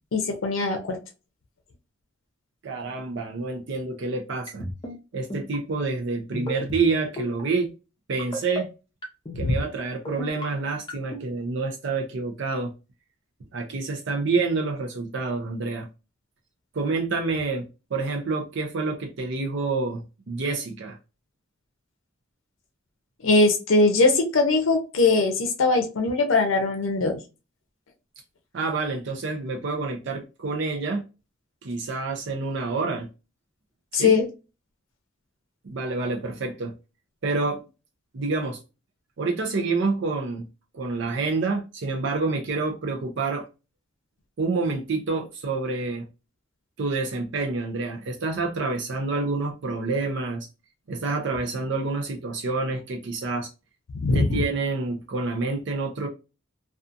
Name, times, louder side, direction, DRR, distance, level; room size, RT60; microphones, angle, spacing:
voice 1, 0.1-1.0 9.3-9.5 23.2-27.2 33.9-34.3 54.0-54.3, left 3 dB, 80° left, 0.6 m, -21 dB
voice 2, 2.6-4.7 5.1-7.7 8.1-8.7 9.4-12.7 13.5-15.9 16.7-21.0 28.5-31.0 31.6-33.1 33.9-34.2 35.6-36.7 37.2-37.6 38.1-38.6 39.2-40.5 40.7-43.5 44.4-46.1 46.8-50.5 50.9-53.5 54.1-56.1, right 3 dB, 60° right, 0.5 m, -28 dB
sound 1, 4.5-4.9 5.3-5.6 6.3-6.8 7.2-7.4 8.2-8.6 9.0-9.4 10.0-10.4 10.9-11.2, left 1 dB, 25° left, 0.5 m, -33 dB
2.6 x 2.4 x 2.4 m
head